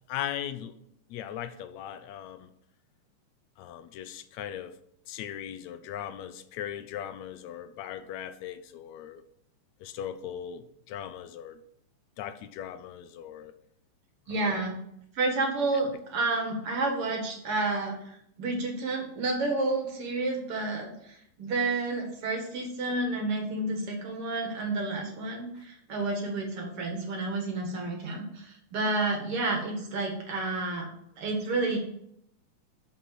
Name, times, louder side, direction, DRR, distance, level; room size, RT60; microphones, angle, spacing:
voice 1, 0.1-0.8 1.1-2.5 3.6-4.7 5.1-9.2 9.8-11.6 12.2-13.5 14.3-14.6, left 10 dB, 80° left, 1.7 m, -39 dB
voice 2, 14.3-14.8 15.1-30.9 31.2-31.8, right 2 dB, 50° right, 2.6 m, -30 dB
7.1 x 6.5 x 7.7 m
omnidirectional pair, 3.6 m